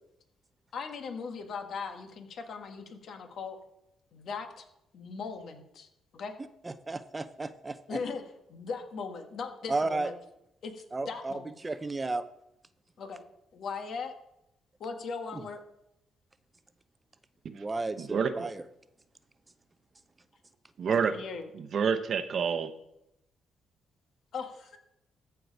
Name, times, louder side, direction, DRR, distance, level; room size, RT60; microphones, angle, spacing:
voice 1, 0.7-3.6 4.1-4.6 4.9-5.9 6.1-6.3 7.9-8.2 8.5-10.1 10.6-11.6 13.0-13.2 13.5-14.1 14.8-15.6 21.1-21.5 24.3-24.8, left 5 dB, 65° left, 6 dB, 1.5 m, -39 dB
voice 2, 6.6-8.0 9.7-10.1 10.9-11.3 11.6-12.2 17.5-18.5, right 3 dB, 20° right, 13 dB, 0.5 m, -33 dB
voice 3, 18.0-18.5 20.8-21.1 21.5-22.7, right 6 dB, 55° right, 10 dB, 0.8 m, -28 dB
14.0 x 4.8 x 5.3 m, 0.82 s
cardioid pair, 90°, 0 cm